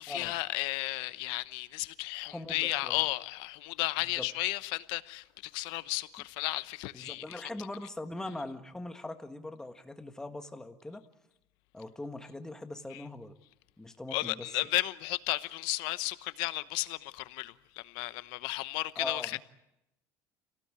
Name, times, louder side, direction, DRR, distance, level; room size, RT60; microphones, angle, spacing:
voice 1, 0.0-7.4 12.9-13.0 14.1-19.4, left 19 dB, 80° left, 0.9 m, -34 dB
voice 2, 2.2-3.0 4.0-4.3 6.9-11.0 11.7-13.3 13.8-14.5 18.9-19.4, left 2 dB, 5° left, 1.5 m, -41 dB
27.5 x 18.0 x 8.5 m
cardioid pair, 145°, 8 cm